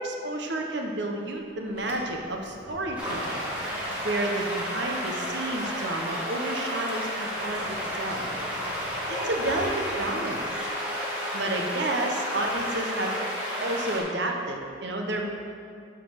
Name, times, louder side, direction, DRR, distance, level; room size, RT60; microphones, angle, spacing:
voice 1, 0.0-3.4 4.0-7.6 7.9-8.3 9.1-10.4 11.3-13.2 13.6-15.3, right 2 dB, 60° right, 2 dB, 0.9 m, -30 dB
Sliding door, 1.4-5.6 5.9-10.7, equal, 30° left, 1.6 m, -45 dB
sound 1, 3.0-14.0, equal, 5° right, 1.7 m, -32 dB
Brass instrument, 9.1-13.6, left 2 dB, 90° left, 1.1 m, -42 dB
9.4 x 4.1 x 6.5 m, 2.4 s
head